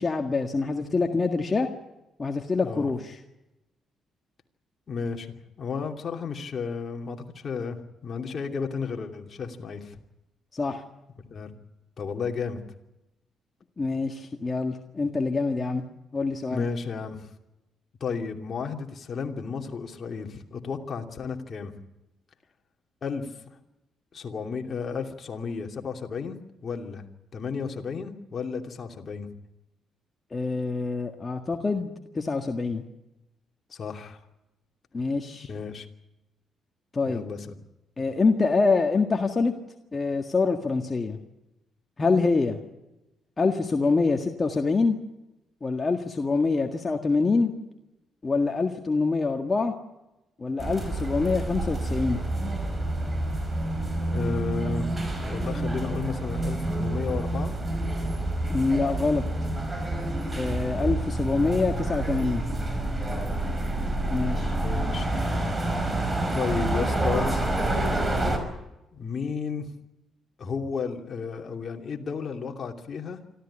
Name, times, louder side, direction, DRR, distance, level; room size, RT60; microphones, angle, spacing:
voice 1, 0.0-1.7 2.2-3.2 10.5-10.8 13.8-15.8 16.1-16.7 30.3-32.8 34.9-35.5 36.9-37.2 38.0-39.5 39.9-41.2 42.0-42.6 43.4-45.0 45.6-47.5 48.2-49.7 50.4-52.2 58.5-59.2 60.4-62.4 64.1-64.5, left 4 dB, 30° left, 3 dB, 1.8 m, -25 dB
voice 2, 4.9-10.0 11.3-11.5 12.0-12.6 16.5-17.3 18.0-21.7 23.0-23.6 24.1-26.4 26.6-27.1 27.3-29.3 33.7-34.2 35.5-35.9 37.1-37.5 54.1-57.5 60.5-60.9 63.1-63.5 64.6-65.1 66.3-67.7 68.9-69.7 70.4-73.2, left 5 dB, 45° left, 3 dB, 2.7 m, -33 dB
sound 1, 50.6-68.4, right 1 dB, 20° right, 5.2 m, -28 dB
26.0 x 14.0 x 10.0 m, 0.97 s
cardioid pair, 90°, 0 cm